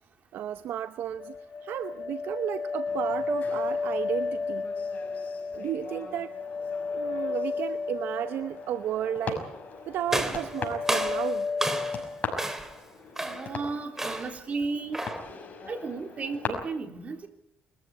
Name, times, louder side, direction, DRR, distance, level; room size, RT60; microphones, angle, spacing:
voice 1, 0.3-1.4 1.6-4.7 5.5-6.3 6.9-9.5 9.9-11.5, right 11 dB, 70° right, 12 dB, 0.8 m, -33 dB
sound 1, 1.2-9.3 9.6-10.2 10.5-12.3, left 4 dB, 60° left, 2.3 m, -33 dB
sound 2, 2.9-16.5, left 4 dB, 45° left, 5.9 m, -41 dB
sound 3, 10.1-12.1 12.4-12.8 13.2-13.6 14.0-14.4 14.9-15.3, right 1 dB, 10° right, 3.1 m, -31 dB
voice 2, 13.2-15.0 15.7-17.3, right 4 dB, 40° right, 6 dB, 3.6 m, -34 dB
22.5 x 14.5 x 9.6 m, 0.76 s
cardioid pair, 90°, 4 cm